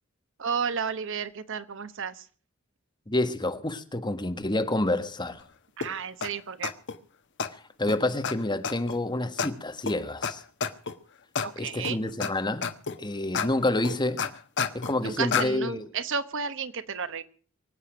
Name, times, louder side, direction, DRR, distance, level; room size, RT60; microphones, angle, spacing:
voice 1, 0.4-2.2 5.8-6.7 11.4-12.0 15.0-17.2, right 6 dB, 65° right, 1.0 m, -32 dB
voice 2, 3.1-5.4 7.5-10.4 11.5-12.7 13.0-14.2 14.7-15.9, left 2 dB, 20° left, 1.5 m, -28 dB
sound 1, 5.8-5.9 6.2-6.3 6.6-7.0 7.4-7.5 7.9-8.0 8.2-8.3 8.6-9.0 9.4-9.5 9.9-10.0 10.2-10.3 10.6-10.9 11.4-11.5 11.8-12.3 12.6-13.0 13.3-13.5 13.8-14.9 15.3-15.5, left 6 dB, 60° left, 1.2 m, -29 dB
24.0 x 8.5 x 6.0 m
head